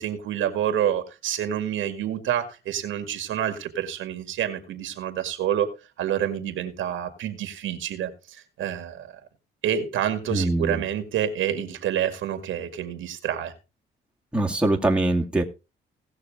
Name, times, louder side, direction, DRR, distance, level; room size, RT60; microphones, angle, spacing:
voice 1, 0.0-5.7 6.0-9.1 9.6-13.5, right 10 dB, 80° right, 2.0 m, -28 dB
voice 2, 10.3-10.8 14.3-15.4, right 2 dB, 5° right, 2.1 m, -23 dB
18.0 x 6.4 x 3.7 m
cardioid pair, 90°, 20 cm